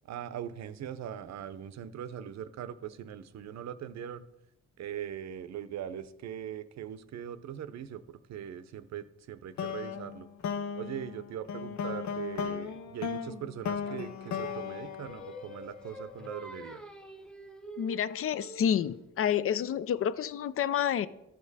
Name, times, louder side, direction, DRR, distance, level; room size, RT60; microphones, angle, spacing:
voice 1, 0.0-4.3 4.8-10.3 10.8-16.8, right 9 dB, 60° right, 13 dB, 0.6 m, -41 dB
sound 1, 9.6-16.0, left 7 dB, 70° left, 0.8 m, -37 dB
Singing, 13.8-19.0, equal, 5° left, 0.7 m, -46 dB
voice 2, 17.8-21.1, left 9 dB, 45° left, 16 dB, 0.5 m, -29 dB
13.5 x 5.1 x 4.1 m, 0.89 s
cardioid pair, 90°, 30 cm